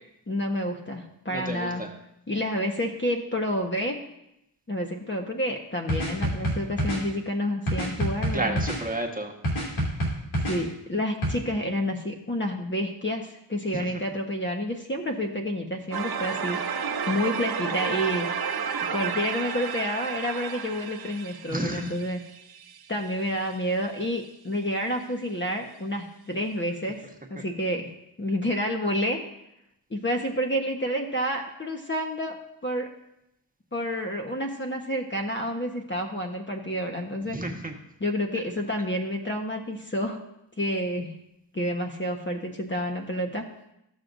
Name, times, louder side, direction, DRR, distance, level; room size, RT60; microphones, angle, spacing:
voice 1, 0.3-1.8 2.3-4.0 4.7-8.6 10.5-18.3 18.9-22.2 22.9-27.0 27.3-27.9 28.2-29.2 29.9-32.4 32.6-32.9 33.7-37.4 38.0-40.2 40.6-41.1 41.5-43.4, equal, 25° left, 2 dB, 1.2 m, -29 dB
voice 2, 1.3-1.9 8.3-9.3 13.7-13.9 21.5-21.9 37.3-37.7, right 2 dB, 20° right, 1 dB, 1.4 m, -31 dB
sound 1, 5.9-7.0 7.7-8.8 9.4-10.6 11.2-11.3, right 1 dB, 90° left, 2.7 m, -26 dB
sound 2, 15.9-22.8, right 6 dB, 55° right, 0.9 m, -31 dB
15.0 x 6.4 x 2.6 m, 0.83 s
cardioid pair, 60°, 46 cm